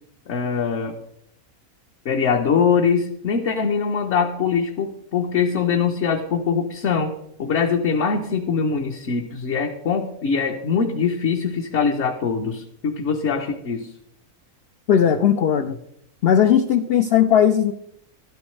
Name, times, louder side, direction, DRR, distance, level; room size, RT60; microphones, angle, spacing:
voice 1, 0.3-1.0 2.0-7.1 7.4-13.9, left 6 dB, 55° left, 1 dB, 1.0 m, -22 dB
voice 2, 14.9-15.8 16.2-17.7, left 9 dB, 75° left, 8 dB, 0.5 m, -17 dB
12.0 x 10.5 x 3.2 m, 0.77 s
omnidirectional pair, 1.6 m